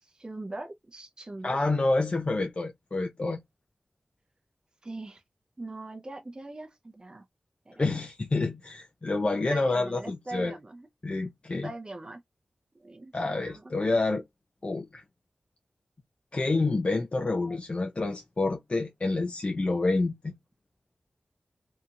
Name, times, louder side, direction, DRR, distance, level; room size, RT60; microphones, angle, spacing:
voice 1, 0.0-1.6 4.8-5.2 5.6-7.2 7.7-7.8 9.5-10.9 11.6-12.2 12.7-13.6, right 2 dB, 30° right, 0.5 m, -41 dB
voice 2, 1.4-3.4 7.8-10.5 11.0-11.7 13.1-14.2 14.6-15.0 16.3-20.3, left 3 dB, 40° left, 0.5 m, -28 dB
2.7 x 2.7 x 2.4 m
wide cardioid pair, 85°, 3 cm